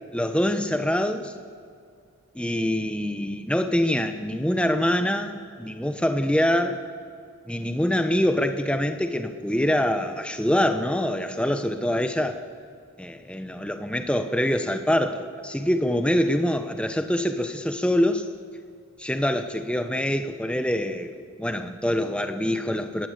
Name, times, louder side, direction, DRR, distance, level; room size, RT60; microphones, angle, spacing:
voice 1, 0.1-1.3 2.3-6.8 7.5-12.4 13.0-18.3 19.0-23.1, left 1 dB, 5° left, 7 dB, 1.1 m, -25 dB
29.0 x 19.5 x 8.2 m, 2.3 s
head